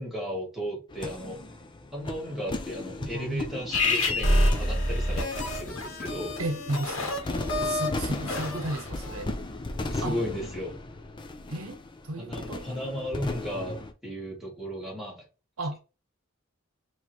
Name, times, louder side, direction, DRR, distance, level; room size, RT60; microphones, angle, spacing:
voice 1, 0.0-1.4 1.9-6.4 9.9-10.8 12.2-15.2, equal, ahead, 2.1 m, -35 dB
sound 1, 0.9-13.9, left 2 dB, 20° left, 0.5 m, -37 dB
voice 2, 3.0-3.6 6.4-7.2 7.6-9.3 10.0-10.2 11.5-11.8 12.0-12.7 15.6-15.8, right 2 dB, 90° right, 0.9 m, -33 dB
sound 2, 3.7-9.2, left 1 dB, 75° left, 1.5 m, -28 dB
4.6 x 3.1 x 3.0 m
head